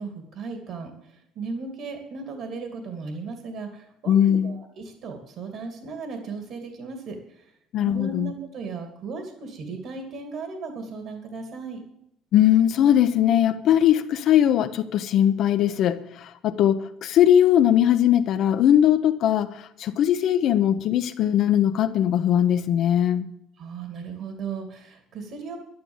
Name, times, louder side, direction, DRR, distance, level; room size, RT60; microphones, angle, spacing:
voice 1, 0.0-7.5 7.8-11.8 23.6-25.6, right 4 dB, 55° right, 2.5 m, -36 dB
voice 2, 4.1-4.5 7.7-8.3 12.3-23.3, left 10 dB, 50° left, 0.8 m, -20 dB
11.5 x 11.5 x 7.2 m
cardioid pair, 150°, 0 cm